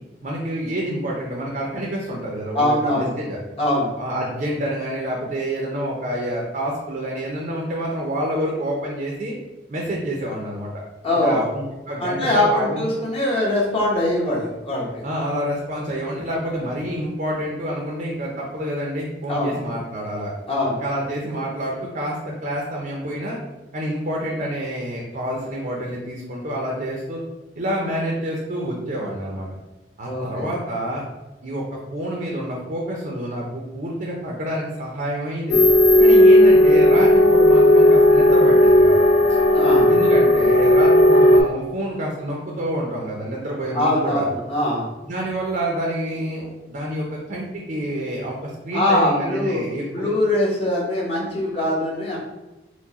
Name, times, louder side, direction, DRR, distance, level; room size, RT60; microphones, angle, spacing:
voice 1, 0.2-3.4 4.0-9.3 9.7-10.8 11.1-12.9 15.0-20.3 20.8-23.4 23.7-27.2 27.6-29.5 30.0-31.0 31.4-35.6 36.0-39.0 39.9-44.3 45.0-50.1, equal, 50° right, -2 dB, 0.6 m, -28 dB
voice 2, 2.5-3.1 3.6-3.9 11.0-11.4 12.0-15.1 19.3-19.5 20.5-20.8 30.1-30.5 39.5-39.9 43.7-44.9 48.7-49.6 49.9-52.2, left 1 dB, 35° left, -5 dB, 1.0 m, -22 dB
sound 1, 35.5-41.4, left 1 dB, 90° left, 0.5 m, -13 dB
4.5 x 2.2 x 4.1 m, 1.1 s
head